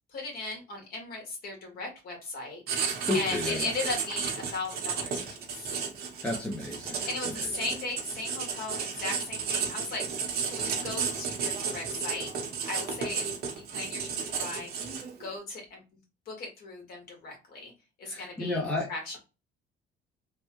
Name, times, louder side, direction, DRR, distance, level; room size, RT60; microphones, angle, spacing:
voice 1, 0.1-2.6 3.1-5.8 7.0-10.0 10.4-12.3 12.6-13.3 13.5-14.7 15.2-15.8 16.3-17.7 18.0-18.6 18.9-19.2, left 2 dB, 60° left, 0 dB, 1.6 m, -37 dB
Writing, 2.7-15.3, right 6 dB, 60° right, 0.9 m, -33 dB
voice 2, 3.1-3.7 6.2-7.1 18.1-18.9, left 2 dB, 5° left, -2 dB, 0.7 m, -31 dB
3.4 x 2.2 x 2.9 m, 0.30 s
cardioid pair, 140°, 18 cm